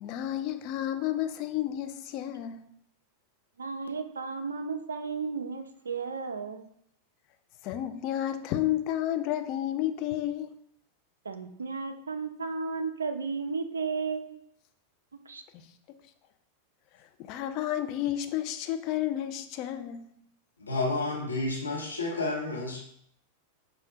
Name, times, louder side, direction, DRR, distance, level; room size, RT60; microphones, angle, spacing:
voice 1, 0.0-2.7 7.6-10.5 15.5-15.7 17.2-20.0, left 12 dB, 40° left, 0.3 m, -31 dB
voice 2, 3.6-6.6 11.3-14.4 15.3-15.4, right 4 dB, 75° right, 0.3 m, -34 dB
voice 3, 20.6-22.8, left 2 dB, 75° left, 0.8 m, -30 dB
4.8 x 2.1 x 2.7 m
figure-of-eight pair, 90°, 0 cm